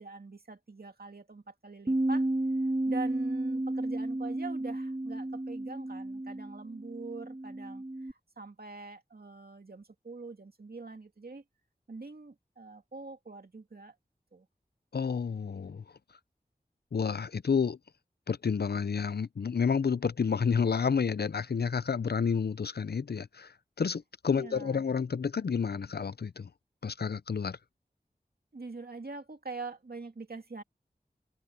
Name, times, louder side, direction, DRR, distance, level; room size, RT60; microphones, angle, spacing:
voice 1, 0.0-2.3 2.6-11.4 11.9-14.0 14.3-14.5 24.3-24.8 28.5-30.6, right 3 dB, 70° right, 2.3 m, -44 dB
Bass guitar, 1.9-8.1, right 1 dB, 35° right, 1.5 m, -32 dB
voice 2, 14.9-15.8 16.9-17.8 18.3-23.5 23.8-26.5 26.8-27.6, left 6 dB, 80° left, 0.6 m, -30 dB
wide cardioid pair, 55°, 16 cm